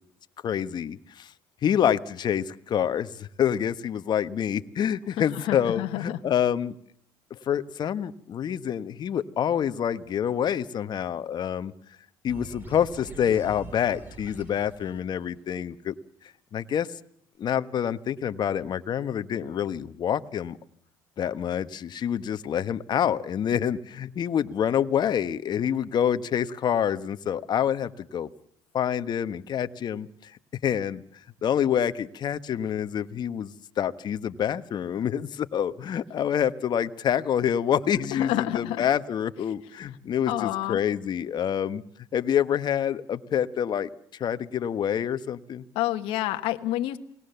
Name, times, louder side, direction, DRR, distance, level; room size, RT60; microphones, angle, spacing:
voice 1, 0.4-1.3 1.6-6.7 7.3-11.7 12.2-15.9 16.5-16.9 17.4-20.6 21.2-28.3 28.7-30.3 30.6-31.0 31.4-41.8 42.1-43.9 44.2-45.6, left 9 dB, 50° left, 11 dB, 1.3 m, -27 dB
voice 2, 5.2-6.2 38.1-38.8 40.3-40.8 45.7-47.0, left 14 dB, 75° left, 8 dB, 1.4 m, -28 dB
sound 1, 12.3-15.6, right 2 dB, 20° right, 7.2 m, -44 dB
29.0 x 19.5 x 7.0 m, 0.67 s
supercardioid pair, 75°, 9 cm